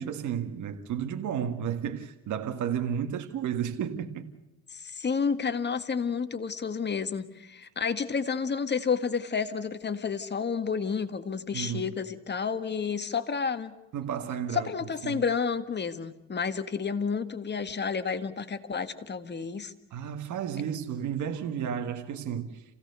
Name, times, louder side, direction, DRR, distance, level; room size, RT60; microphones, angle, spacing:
voice 1, 0.0-4.3 11.5-11.9 13.9-14.7 15.0-15.2 19.9-22.6, right 8 dB, 75° right, 1.8 m, -32 dB
voice 2, 4.7-13.7 14.5-19.7, left 6 dB, 35° left, 1.7 m, -30 dB
28.0 x 16.5 x 6.9 m
cardioid pair, 90°, 30 cm